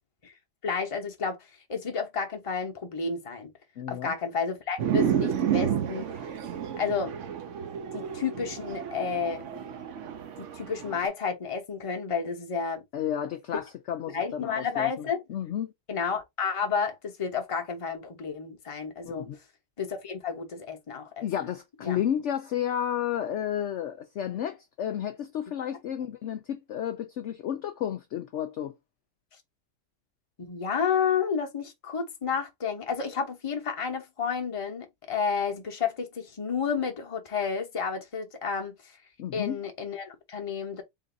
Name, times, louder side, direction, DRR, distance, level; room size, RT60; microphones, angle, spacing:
voice 1, 0.6-1.4 1.7-3.5 3.9-6.1 6.8-7.1 7.9-9.4 10.4-12.8 14.1-15.2 15.9-19.3 19.8-21.2 21.8-22.0 30.4-38.8 39.3-40.8, left 6 dB, 30° left, 0.7 m, -31 dB
voice 2, 3.8-4.1 12.9-15.7 19.0-19.4 21.2-28.7 39.2-39.6, left 10 dB, 70° left, 0.7 m, -32 dB
sound 1, 4.8-11.1, right 9 dB, 60° right, 0.8 m, -31 dB
3.8 x 2.5 x 3.8 m
omnidirectional pair, 1.7 m